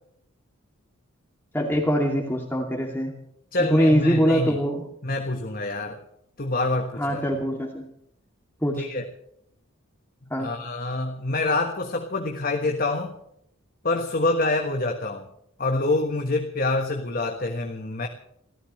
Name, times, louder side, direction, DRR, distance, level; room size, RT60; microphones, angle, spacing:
voice 1, 1.5-3.1 3.7-4.9 7.0-7.9 8.6-8.9 10.3-10.6, equal, 10° left, 0 dB, 2.5 m, -23 dB
voice 2, 3.5-4.6 5.0-6.0 6.4-7.2 8.8-9.0 10.4-13.1 13.8-15.3 15.6-18.1, left 2 dB, 40° left, 4 dB, 1.4 m, -26 dB
28.5 x 14.5 x 3.2 m, 0.74 s
head